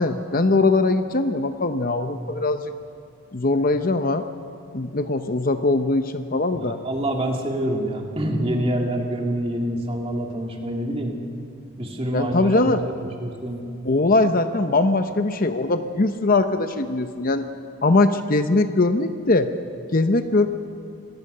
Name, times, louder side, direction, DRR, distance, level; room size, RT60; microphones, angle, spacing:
voice 1, 0.0-2.7 3.3-4.2 4.7-6.8 12.1-12.8 13.8-17.5 17.8-19.5 19.9-20.5, left 2 dB, 40° left, 9 dB, 0.7 m, -21 dB
voice 2, 6.5-11.2 11.8-13.6, right 1 dB, 25° right, 1 dB, 2.4 m, -26 dB
25.5 x 19.5 x 6.7 m, 2.5 s
head